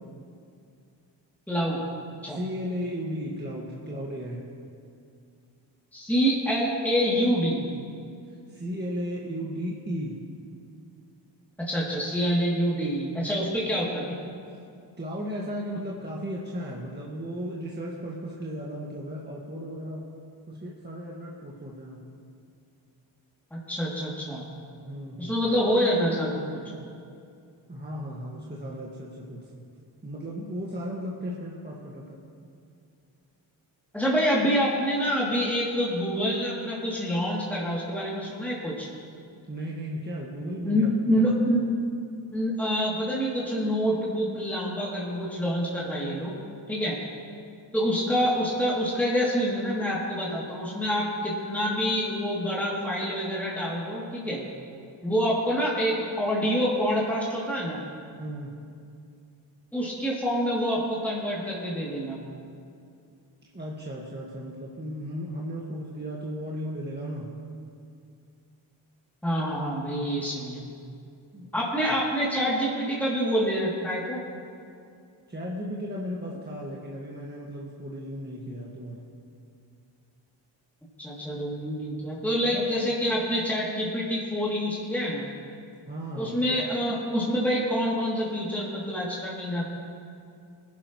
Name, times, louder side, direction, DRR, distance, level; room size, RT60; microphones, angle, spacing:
voice 1, 1.5-1.8 2.2-2.4 5.9-7.6 11.6-14.2 23.5-24.4 25.2-26.6 33.9-38.9 40.6-41.7 42.3-46.4 46.7-47.0 47.7-54.4 55.0-57.8 59.7-62.2 69.2-70.6 71.5-74.2 81.0-85.3 86.2-89.7, equal, 5° left, -6 dB, 2.8 m, -26 dB
voice 2, 2.3-4.4 8.3-10.2 15.0-20.0 20.5-22.0 24.8-25.4 27.7-29.6 30.0-32.2 39.5-40.9 58.2-58.6 63.5-67.3 71.3-71.5 75.3-79.0 82.5-82.6 85.8-86.4, equal, 20° right, -4 dB, 1.9 m, -35 dB
18.5 x 11.0 x 3.1 m, 2.4 s
supercardioid pair, 45°, 49 cm